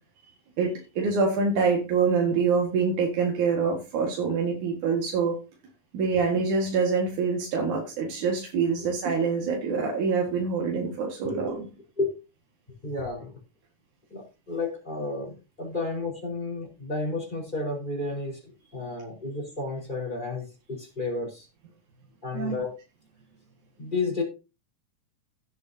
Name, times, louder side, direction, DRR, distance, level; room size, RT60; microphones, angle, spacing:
voice 1, 0.6-5.4 5.9-11.7 22.3-22.7, right 5 dB, 85° right, 0 dB, 3.3 m, -25 dB
voice 2, 12.8-13.4 14.1-21.5 22.2-22.7 23.8-24.2, left 3 dB, 15° left, -1 dB, 4.7 m, -32 dB
16.5 x 8.5 x 2.8 m, 0.29 s
omnidirectional pair, 3.4 m